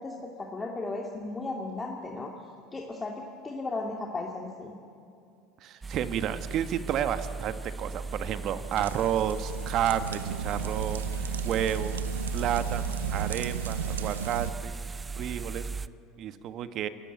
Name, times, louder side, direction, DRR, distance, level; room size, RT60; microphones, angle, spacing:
voice 1, 0.0-2.3 2.7-4.7, left 3 dB, 20° left, 0 dB, 2.5 m, -35 dB
voice 2, 5.6-11.1 11.4-11.9 12.3-14.7 15.2-15.7 16.2-16.9, right 10 dB, 50° right, 11 dB, 1.3 m, -31 dB
sound 1, 5.8-15.9, right 4 dB, 20° right, 0.6 m, -36 dB
sound 2, 8.7-14.5, right 8 dB, 85° right, 0.6 m, -35 dB
27.5 x 15.0 x 9.3 m, 2.5 s
hypercardioid pair, 75°, 0 cm